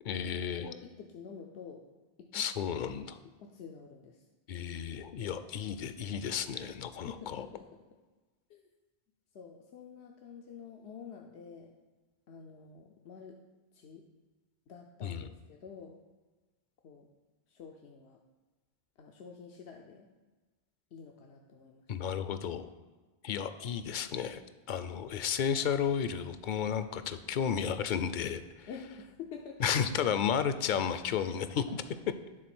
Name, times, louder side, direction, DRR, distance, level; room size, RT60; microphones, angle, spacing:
voice 1, 0.0-0.7 2.3-3.2 4.5-7.5 15.0-15.3 21.9-22.7 23.2-24.4 24.7-28.7 29.6-31.8, left 7 dB, 60° left, 11 dB, 0.6 m, -33 dB
voice 2, 0.6-1.8 2.2-2.7 3.4-4.2 5.2-5.5 7.1-7.6 8.5-8.6 9.3-11.7 12.3-13.4 13.7-14.0 14.7-16.0 16.8-17.1 17.5-18.2 19.0-20.1 20.9-21.8 28.7-29.7 31.5-32.0, left 6 dB, 90° left, 2 dB, 0.9 m, -48 dB
10.0 x 3.9 x 6.0 m, 1.2 s
omnidirectional pair, 1.1 m